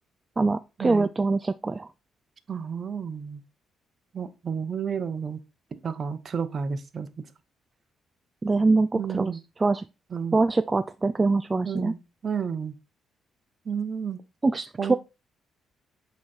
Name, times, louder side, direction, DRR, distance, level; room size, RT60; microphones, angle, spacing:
voice 1, 0.4-1.9 8.4-9.8 10.3-11.9 14.4-14.9, right 3 dB, 25° right, 0.3 m, -24 dB
voice 2, 2.5-3.4 4.1-5.4 5.7-7.3 8.9-9.4 10.1-10.4 11.6-12.7 13.7-14.2 14.8-15.0, right 6 dB, 45° right, 0.8 m, -31 dB
8.4 x 3.2 x 4.2 m
cardioid pair, 90°, 0 cm